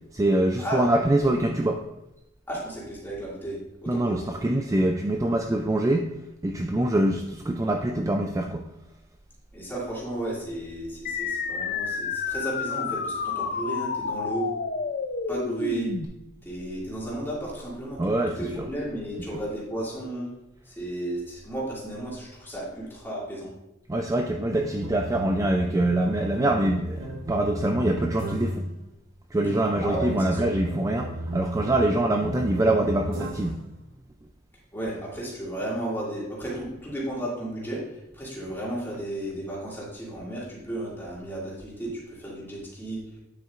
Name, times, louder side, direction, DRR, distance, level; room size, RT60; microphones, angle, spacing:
voice 1, 0.1-1.8 3.9-6.1 6.4-8.7 18.0-18.7 23.9-28.7 29.3-33.6, right 1 dB, 15° right, 3 dB, 0.3 m, -24 dB
voice 2, 2.5-4.3 9.5-14.5 15.3-15.9 16.4-20.3 20.7-23.5 29.8-30.5 34.7-37.8 38.1-43.0, right 1 dB, 10° left, -6 dB, 2.4 m, -33 dB
sound 1, 11.1-16.1, left 5 dB, 45° left, 0.5 m, -30 dB
sound 2, 24.5-28.7 29.4-33.7, right 1 dB, 75° right, 0.9 m, -34 dB
9.2 x 7.4 x 2.5 m, 0.89 s
head